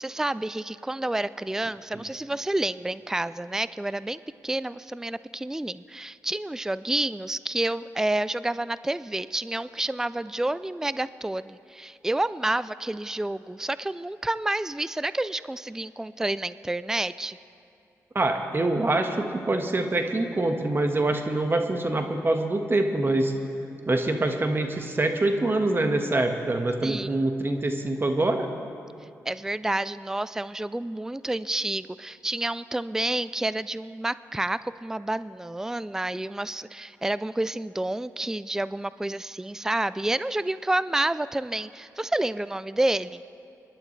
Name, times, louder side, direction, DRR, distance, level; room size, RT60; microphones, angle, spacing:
voice 1, 0.0-17.4 26.8-27.2 29.3-43.2, right 1 dB, 10° right, 16 dB, 0.4 m, -29 dB
voice 2, 18.1-23.3 23.9-28.5, right 2 dB, 35° right, 5 dB, 1.5 m, -25 dB
25.5 x 11.0 x 3.3 m, 2.6 s
supercardioid pair, 45°, 7 cm